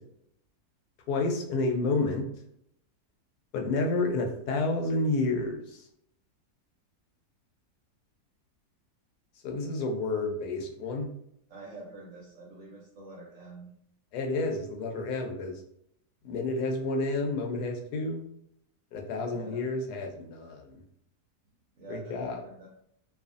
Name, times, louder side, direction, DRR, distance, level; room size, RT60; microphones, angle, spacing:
voice 1, 1.1-2.3 3.5-5.9 9.4-11.1 14.1-15.6 16.2-18.2 18.9-20.8 21.9-22.4, left 2 dB, 80° left, 2 dB, 1.1 m, -30 dB
voice 2, 11.5-13.7 19.3-19.6 21.7-22.7, right 2 dB, 65° right, -3 dB, 0.8 m, -46 dB
2.6 x 2.4 x 2.4 m, 0.74 s
omnidirectional pair, 1.7 m